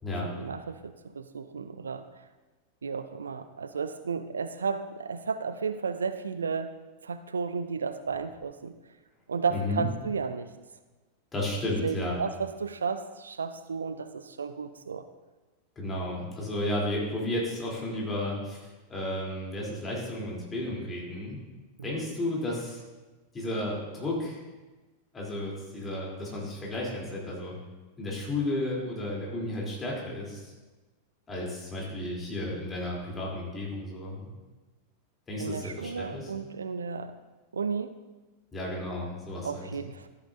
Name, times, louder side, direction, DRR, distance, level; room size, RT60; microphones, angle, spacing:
voice 1, 0.3-2.2 2.8-6.7 7.0-8.7 9.3-10.5 11.8-15.0 21.8-22.0 35.4-37.1 37.5-38.0 39.0-39.1 39.4-40.1, right 5 dB, 70° right, 11 dB, 0.4 m, -33 dB
voice 2, 9.5-9.8 11.3-12.1 15.8-21.4 21.8-22.8 23.3-24.4 25.1-27.5 28.0-30.5 31.3-34.3 35.3-36.3 38.5-39.7, left 1 dB, 20° left, -4 dB, 3.1 m, -33 dB
13.5 x 8.2 x 2.6 m, 1.2 s
figure-of-eight pair, 90°, 0 cm